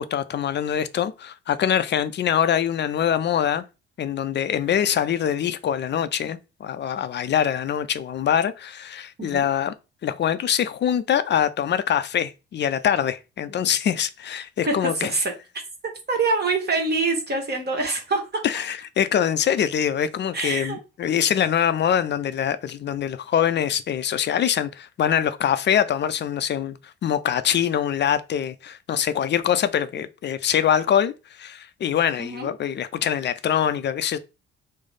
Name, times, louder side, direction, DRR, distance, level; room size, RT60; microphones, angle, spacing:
voice 1, 0.0-3.6 4.0-9.7 10.0-15.1 18.4-26.8 27.0-34.2, left 9 dB, 40° left, 0.4 m, -24 dB
voice 2, 14.7-15.3 15.8-18.4 20.3-20.8 32.2-32.5, right 3 dB, 35° right, 1.1 m, -25 dB
3.1 x 2.0 x 3.9 m
hypercardioid pair, 50°, 29 cm